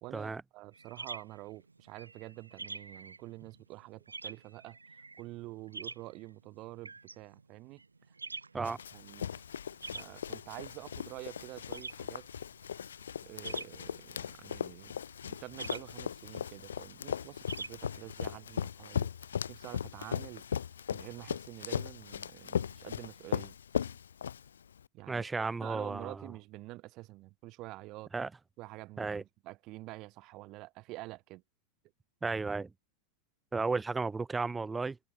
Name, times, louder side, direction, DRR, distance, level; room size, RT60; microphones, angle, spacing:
voice 1, 0.0-4.8 5.2-7.8 8.6-9.3 9.9-12.3 13.2-14.9 15.2-19.1 19.5-20.4 20.9-23.6 24.9-28.1 28.6-31.4, right 20 dB, 40° right, 1.4 m, -47 dB
sound 1, 0.7-18.4, right 3 dB, 80° right, 1.3 m, -47 dB
Run, 8.6-24.8, left 8 dB, 65° left, 0.3 m, -38 dB
voice 2, 25.1-26.3 28.1-28.3 29.0-29.2 32.2-32.7 33.5-35.0, right 4 dB, 10° right, 0.4 m, -34 dB
figure-of-eight pair, 90°, 0 cm